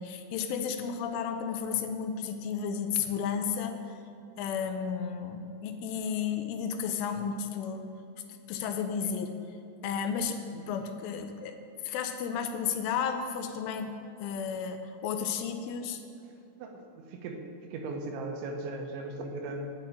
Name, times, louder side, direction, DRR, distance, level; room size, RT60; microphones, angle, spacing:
voice 1, 0.0-3.8 4.4-7.9 8.3-9.4 9.8-11.6 11.8-13.9 14.2-16.0, left 7 dB, 85° left, 7 dB, 3.2 m, -33 dB
voice 2, 16.6-19.7, right 2 dB, 80° right, 3 dB, 3.1 m, -38 dB
11.0 x 5.9 x 8.6 m, 2.8 s
omnidirectional pair, 5.6 m